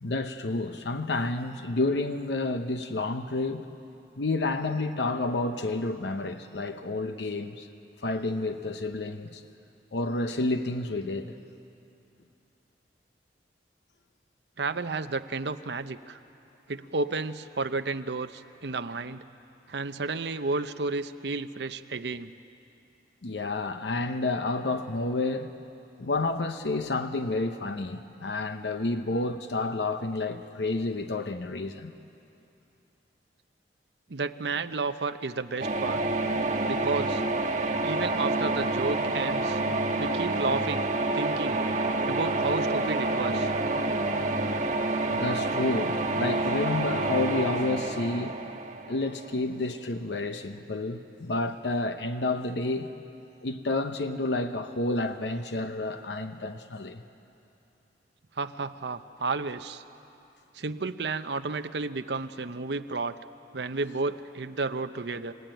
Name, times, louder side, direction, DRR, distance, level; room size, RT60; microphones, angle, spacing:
voice 1, 0.0-3.7 4.2-7.7 8.0-9.4 9.9-11.3 23.2-25.5 26.0-31.9 45.1-48.4 48.9-52.9 53.4-57.0, left 2 dB, 80° left, 7 dB, 0.9 m, -30 dB
voice 2, 14.6-16.2 16.7-19.2 19.7-22.3 34.1-36.0 36.7-37.2 37.8-39.6 40.0-40.9 41.1-41.6 42.1-43.5 58.4-59.8 60.5-63.2 63.5-65.3, right 3 dB, 75° right, 10 dB, 0.8 m, -32 dB
sound 1, 35.6-49.4, right 2 dB, 45° right, 1.3 m, -28 dB
28.0 x 16.5 x 9.1 m, 2.8 s
head